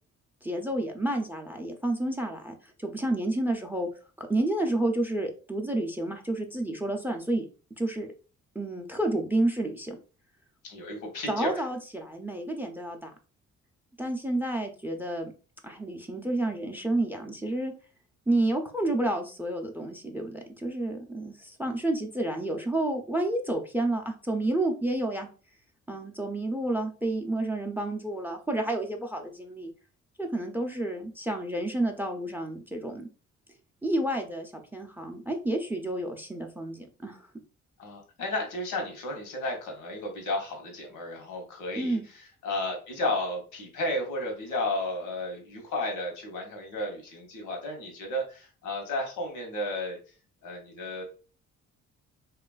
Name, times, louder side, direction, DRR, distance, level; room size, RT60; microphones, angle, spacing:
voice 1, 0.4-3.9 4.2-7.5 7.8-8.1 8.6-10.0 11.3-13.1 14.0-15.3 15.6-17.7 18.3-25.3 25.9-29.7 30.2-33.1 33.8-37.3 41.8-42.1, right 1 dB, 5° right, 4 dB, 0.4 m, -30 dB
voice 2, 10.6-11.6 37.8-42.0 42.4-50.0 50.4-51.0, left 1 dB, 85° left, 2 dB, 0.9 m, -33 dB
2.9 x 2.4 x 2.2 m, 0.36 s
cardioid pair, 90°, 30 cm